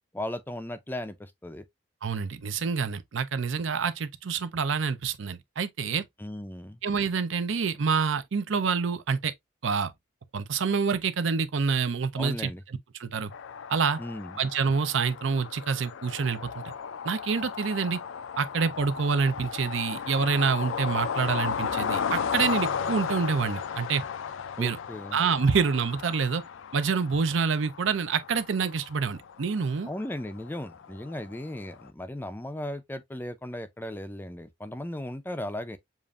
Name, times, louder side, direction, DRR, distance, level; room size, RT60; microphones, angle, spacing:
voice 1, 0.1-1.6 6.2-6.8 12.2-12.6 14.0-14.4 24.5-25.2 29.9-35.8, left 1 dB, 10° left, 0.4 m, -36 dB
voice 2, 2.0-6.0 6.8-9.3 9.6-9.9 10.3-12.5 13.0-13.3 13.7-14.0 14.4-16.5 17.0-18.0 18.4-24.0 24.6-24.8 25.1-26.4 26.7-29.9, right 5 dB, 70° right, 0.5 m, -27 dB
sound 1, 13.3-31.9, left 7 dB, 75° left, 0.4 m, -35 dB
7.1 x 2.5 x 2.4 m
head